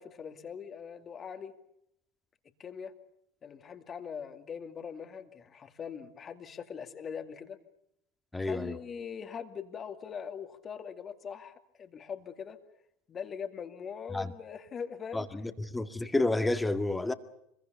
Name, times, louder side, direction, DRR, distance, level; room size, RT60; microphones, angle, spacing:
voice 1, 0.0-1.5 2.6-2.9 3.4-7.6 8.4-12.6 13.1-15.3, left 7 dB, 35° left, 2.4 m, -41 dB
voice 2, 8.3-8.8 14.1-14.3 15.1-17.1, left 2 dB, 10° left, 2.0 m, -30 dB
25.5 x 22.0 x 7.0 m
hypercardioid pair, 80°, 0 cm